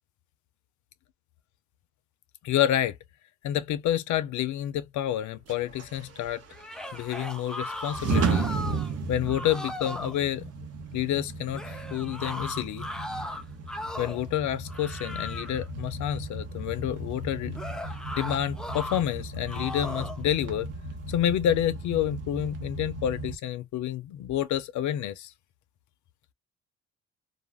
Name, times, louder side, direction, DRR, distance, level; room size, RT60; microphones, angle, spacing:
voice 1, 2.4-3.0 3.4-6.4 6.9-8.5 9.1-10.4 10.9-12.9 14.0-17.6 18.2-20.7 21.1-25.3, left 11 dB, 75° left, 0.5 m, -29 dB
sound 1, 5.5-23.4, right 3 dB, 55° right, 0.8 m, -35 dB
sound 2, 6.5-8.9 9.3-10.2 11.5-14.3 14.7-15.7 17.5-19.0 19.5-20.2, left 1 dB, ahead, 0.4 m, -37 dB
2.4 x 2.0 x 3.2 m
cardioid pair, 90°, 30 cm